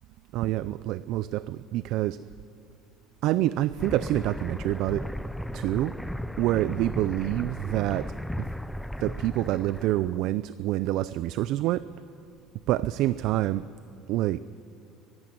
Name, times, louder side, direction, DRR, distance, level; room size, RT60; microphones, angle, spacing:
voice 1, 0.3-2.2 3.2-5.1 5.5-6.0 6.4-8.5 9.0-11.9 12.7-13.6 14.1-14.4, right 14 dB, 55° right, 16 dB, 0.4 m, -27 dB
sound 1, 3.8-10.2, equal, ahead, 0.4 m, -36 dB
23.0 x 12.5 x 9.4 m, 2.9 s
cardioid pair, 165°, 0 cm